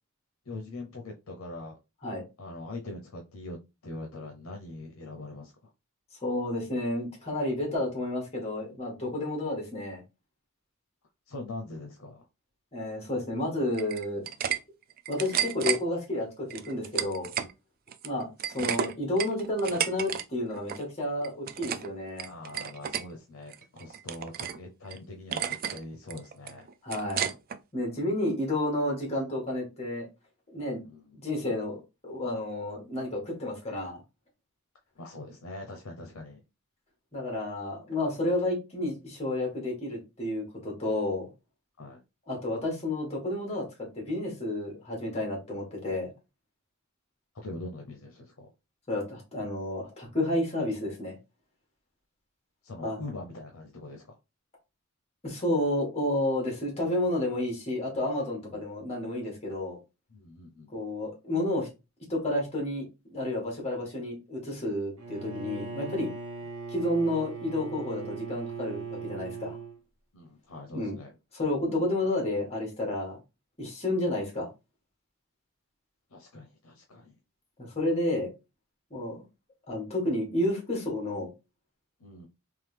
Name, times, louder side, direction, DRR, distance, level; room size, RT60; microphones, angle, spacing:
voice 1, 0.5-1.8 2.4-5.5 11.3-12.3 17.4-17.5 18.1-18.3 22.2-26.7 30.9-31.2 35.0-36.4 41.8-42.0 47.3-48.5 52.6-54.2 58.5-58.6 60.1-60.7 70.1-71.1 76.1-77.1 82.0-82.3, left 2 dB, 75° left, 0.7 m, -42 dB
voice 2, 6.2-10.0 12.7-14.2 15.1-17.3 18.0-18.3 18.5-22.3 26.8-27.3 27.7-30.1 30.5-30.8 31.1-34.0 37.1-41.3 42.3-46.1 48.9-51.2 52.8-53.0 55.2-59.8 60.7-61.7 62.1-66.1 66.7-69.6 70.7-71.0 71.3-73.2 73.6-74.5 77.6-78.3 78.9-79.2 79.7-81.3, left 1 dB, 30° left, 1.8 m, -31 dB
sound 1, 13.7-14.6 14.9-15.8 16.5-17.5 17.9-20.2 20.5-20.8 21.2-21.9 22.2-23.0 23.5-24.6 24.9-25.0 25.3-25.8 26.1-27.6, right 9 dB, 45° right, 0.3 m, -32 dB
Bowed string instrument, 65.0-69.8, right 4 dB, 85° right, 1.0 m, -39 dB
3.8 x 3.0 x 3.3 m
head